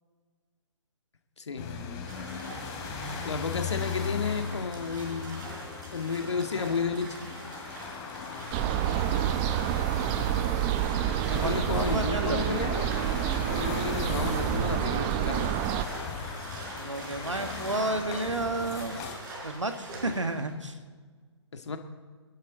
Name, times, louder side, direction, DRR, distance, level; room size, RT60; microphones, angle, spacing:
voice 1, 1.4-1.7 3.2-5.6 5.9-7.2 11.3-12.9 13.5-15.5 21.5-21.8, left 5 dB, 70° left, 5 dB, 1.8 m, -32 dB
sound 1, 1.6-19.1, left 5 dB, 25° left, 2.8 m, -38 dB
sound 2, 2.1-20.5, right 2 dB, 40° right, 4.7 m, -43 dB
sound 3, 8.5-15.9, right 11 dB, 20° right, 0.5 m, -28 dB
voice 2, 11.3-12.4 16.7-19.0 19.4-20.8, right 2 dB, 85° right, 7 dB, 1.8 m, -32 dB
27.5 x 11.5 x 4.0 m, 1.5 s
figure-of-eight pair, 135°, 15 cm